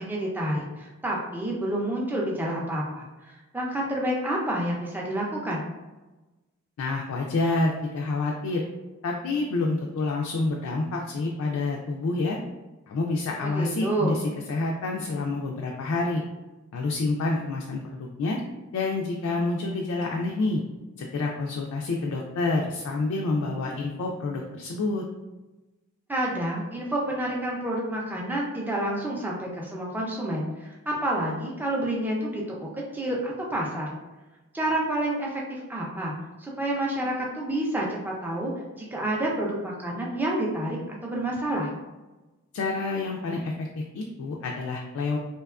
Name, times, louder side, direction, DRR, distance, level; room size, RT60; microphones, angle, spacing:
voice 1, 0.0-5.6 13.4-14.2 26.1-33.9 34.5-36.1 36.4-41.7, right 1 dB, 10° right, -3 dB, 0.4 m, -29 dB
voice 2, 6.8-8.7 9.0-12.4 12.9-14.2 14.5-16.2 16.7-18.4 18.7-20.6 21.0-25.0 42.5-43.7 43.9-45.2, left 3 dB, 80° left, -1 dB, 0.3 m, -28 dB
2.8 x 2.3 x 2.3 m, 1.1 s
head